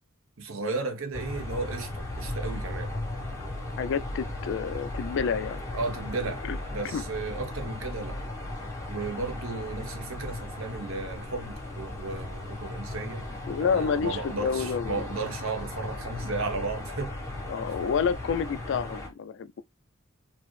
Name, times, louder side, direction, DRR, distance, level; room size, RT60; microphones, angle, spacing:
voice 1, 0.4-2.9 5.7-6.4 6.7-8.2 8.9-13.3 13.6-17.1, right 3 dB, 70° right, 0.8 m, -34 dB
sound 1, 1.1-19.1, left 1 dB, 15° left, 1.1 m, -36 dB
voice 2, 3.8-5.6 6.4-6.6 6.9-7.0 13.5-15.0 17.5-19.6, left 6 dB, 60° left, 0.3 m, -29 dB
4.3 x 2.0 x 3.1 m
head